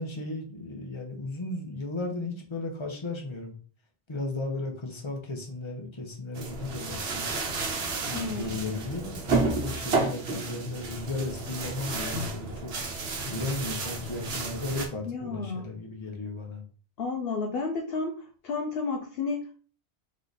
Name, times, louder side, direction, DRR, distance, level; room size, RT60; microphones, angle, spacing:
voice 1, 0.0-3.5 4.1-7.3 8.1-12.7 13.2-16.6, left 2 dB, 25° left, 1 dB, 1.0 m, -35 dB
sound 1, 6.4-14.9, right 3 dB, 65° right, 1.1 m, -31 dB
voice 2, 8.1-8.6 15.1-15.7 17.0-19.6, left 4 dB, 65° left, 3 dB, 0.8 m, -32 dB
3.8 x 3.1 x 4.0 m, 0.41 s
omnidirectional pair, 1.1 m